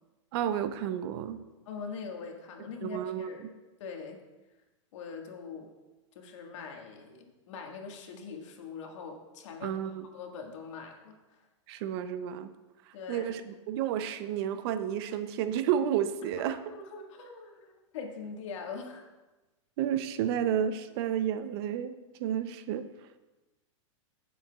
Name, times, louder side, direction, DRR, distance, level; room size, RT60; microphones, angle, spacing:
voice 1, 0.3-1.4 2.8-3.3 9.6-10.1 11.7-12.5 13.1-16.6 19.8-22.9, right 9 dB, 50° right, 11 dB, 0.6 m, -31 dB
voice 2, 1.6-3.5 3.8-4.2 4.9-5.7 6.1-11.4 12.9-13.3 16.3-16.4 16.7-19.0, left 5 dB, 65° left, 2 dB, 1.7 m, -42 dB
16.0 x 7.2 x 2.3 m, 1.1 s
hypercardioid pair, 130°, 16 cm